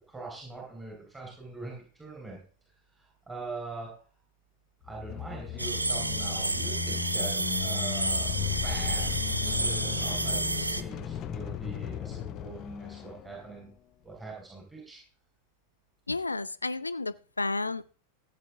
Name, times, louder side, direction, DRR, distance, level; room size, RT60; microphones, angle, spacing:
voice 1, 0.1-3.9 4.8-13.7 14.0-15.0, right 3 dB, 10° right, -3 dB, 4.9 m, -43 dB
sound 1, 4.8-13.6, left 10 dB, 35° left, 0.7 m, -36 dB
sound 2, 5.6-10.8, right 2 dB, 85° right, 0.8 m, -30 dB
voice 2, 16.1-17.9, left 3 dB, 80° left, 18 dB, 0.5 m, -32 dB
16.0 x 8.2 x 3.6 m, 0.40 s
figure-of-eight pair, 90°, 0 cm